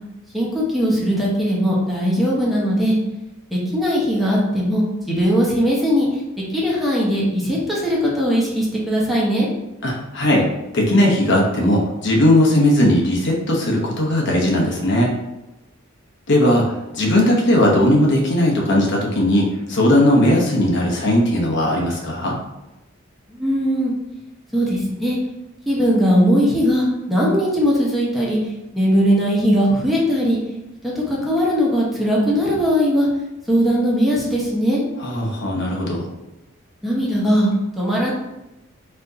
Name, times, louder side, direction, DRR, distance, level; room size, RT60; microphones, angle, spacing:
voice 1, 0.3-3.0 3.5-6.2 6.5-9.5 23.3-23.9 24.5-25.2 25.7-30.4 30.8-33.1 33.5-34.8 36.8-38.1, equal, ahead, -6 dB, 1.0 m, -19 dB
voice 2, 9.8-10.5 10.7-15.1 16.3-16.7 16.9-22.4 35.0-36.1, left 1 dB, 60° left, -2 dB, 0.9 m, -17 dB
4.3 x 2.7 x 3.9 m, 0.97 s
head